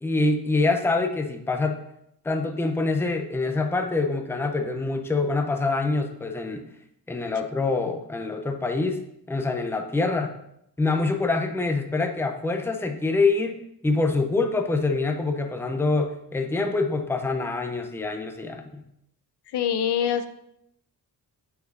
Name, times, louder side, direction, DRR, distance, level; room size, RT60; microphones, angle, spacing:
voice 1, 0.0-1.8 2.2-6.7 7.1-10.3 10.8-13.6 13.8-18.8, left 3 dB, 5° left, 5 dB, 0.5 m, -25 dB
voice 2, 19.5-20.3, left 9 dB, 70° left, 10 dB, 0.5 m, -24 dB
6.8 x 6.5 x 2.6 m, 0.78 s
cardioid pair, 105°, 41 cm